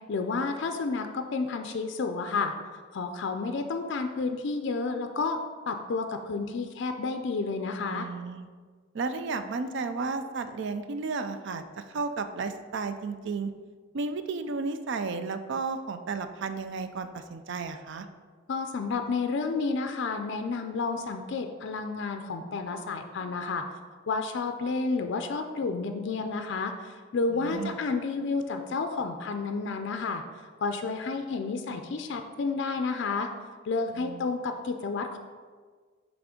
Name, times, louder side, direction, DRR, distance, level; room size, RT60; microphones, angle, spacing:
voice 1, 0.1-2.5 2.9-5.4 5.7-8.1 18.5-23.6 24.1-26.7 27.1-30.2 30.6-33.3 33.7-35.2, left 4 dB, 60° left, 6 dB, 0.4 m, -30 dB
voice 2, 7.9-8.5 8.9-11.6 11.9-13.5 13.9-18.1 27.3-27.8 33.9-34.3, right 4 dB, 60° right, 9 dB, 0.4 m, -33 dB
5.9 x 3.5 x 5.0 m, 1.5 s
head